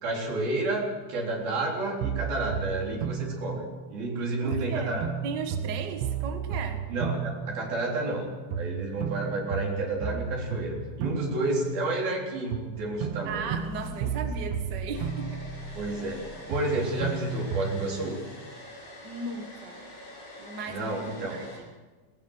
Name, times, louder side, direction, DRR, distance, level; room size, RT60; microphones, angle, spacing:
voice 1, 0.0-5.1 6.9-8.3 8.5-13.5 14.0-14.1 15.7-18.2 20.7-21.4, right 2 dB, 70° right, -1 dB, 5.7 m, -30 dB
sound 1, 2.0-4.2 4.5-8.2 8.5-12.2 12.5-16.2 16.5-18.1, right 8 dB, 85° right, 3.1 m, -34 dB
voice 2, 4.4-6.9 13.2-15.4 19.0-19.8 20.4-21.7, right 4 dB, 45° right, 5 dB, 1.4 m, -37 dB
sound 2, 12.6-16.8, left 3 dB, 70° left, 5.5 m, -44 dB
Domestic sounds home sounds, 14.9-21.6, left 1 dB, 35° left, 6.9 m, -45 dB
20.5 x 19.5 x 6.4 m, 1.2 s
omnidirectional pair, 4.5 m